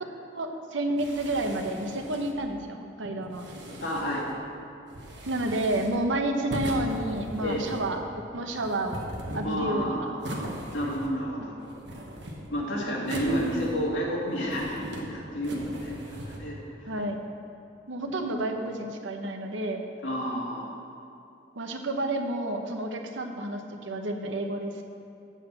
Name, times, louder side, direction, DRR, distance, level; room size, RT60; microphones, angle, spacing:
voice 1, 0.3-3.4 5.3-8.0 8.3-9.0 9.3-10.1 11.8-12.0 16.9-17.1 17.9-19.9 21.6-24.8, right 1 dB, 85° right, 4 dB, 0.9 m, -30 dB
sound 1, 1.0-2.5 3.2-4.4 4.9-6.1 6.5-8.0 8.5-9.7 10.2-11.3 11.6-12.6 13.0-14.0 14.3-15.1 15.4-16.4, equal, 65° right, 1.3 m, -39 dB
voice 2, 3.8-4.3 7.4-7.7 9.4-10.4 10.7-11.6 12.5-16.9 18.1-18.3 20.0-20.7, equal, 80° left, -4 dB, 2.4 m, -31 dB
7.9 x 6.7 x 7.5 m, 2.8 s
head